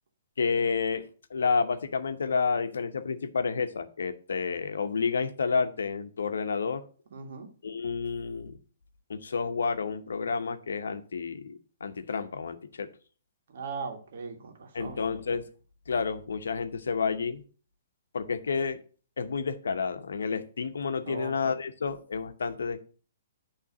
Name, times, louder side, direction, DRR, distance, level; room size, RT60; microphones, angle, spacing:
voice 1, 0.4-6.8 7.6-8.6 9.1-12.9 14.7-15.4 15.9-17.4 18.1-18.8 19.2-22.9, left 5 dB, 85° left, 0.8 m, -30 dB
voice 2, 7.1-7.5 13.5-15.0 21.1-21.3, right 5 dB, 65° right, 1.6 m, -39 dB
8.4 x 3.3 x 5.9 m
hypercardioid pair, 140°, 0 cm